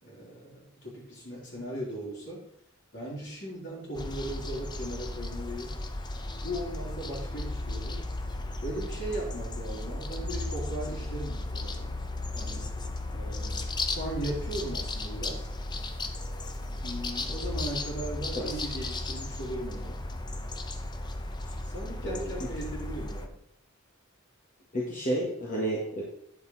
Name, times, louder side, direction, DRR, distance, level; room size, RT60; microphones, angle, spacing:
voice 1, 0.0-2.4 2.9-5.8 6.4-8.0 8.6-11.9 12.3-12.7 13.1-15.5 16.8-20.0 21.6-23.3, right 1 dB, 55° left, -4 dB, 3.9 m, -38 dB
sound 1, 3.9-23.3, left 2 dB, 20° left, 0.6 m, -35 dB
voice 2, 22.0-22.5 24.7-26.0, right 1 dB, 35° left, -5 dB, 1.8 m, -31 dB
9.6 x 7.1 x 4.2 m, 0.68 s
head